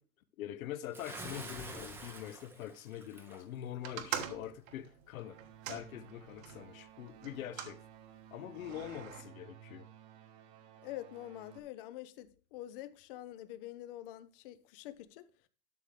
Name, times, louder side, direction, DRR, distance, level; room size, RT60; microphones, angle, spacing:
voice 1, 0.4-5.4 5.7-7.8 8.3-9.9, left 11 dB, 65° left, 1.0 m, -44 dB
Bathtub (filling or washing) / Splash splatter, 0.9-3.4, right 2 dB, 5° right, 0.8 m, -47 dB
sound 1, 3.8-6.6 7.2-7.8 8.6-9.2, right 9 dB, 60° right, 1.5 m, -43 dB
sound 2, 5.1-11.6, right 10 dB, 20° right, 0.4 m, -56 dB
voice 2, 10.8-15.2, left 14 dB, 35° left, 0.8 m, -46 dB
12.0 x 6.4 x 3.3 m
hypercardioid pair, 140°, 45 cm